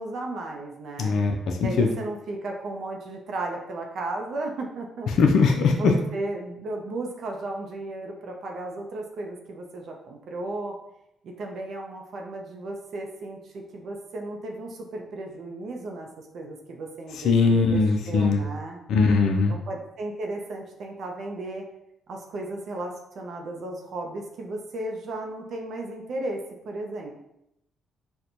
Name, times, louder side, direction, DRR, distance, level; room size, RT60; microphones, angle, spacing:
voice 1, 0.0-1.2 1.6-5.1 5.7-10.8 11.2-18.8 19.5-21.7 22.1-27.1, right 2 dB, 65° right, 1 dB, 0.5 m, -35 dB
voice 2, 1.0-1.9 5.2-5.9 17.2-18.4 18.9-19.5, left 4 dB, 75° left, 3 dB, 0.4 m, -20 dB
4.3 x 2.1 x 2.5 m, 0.83 s
cardioid pair, 90°, 0 cm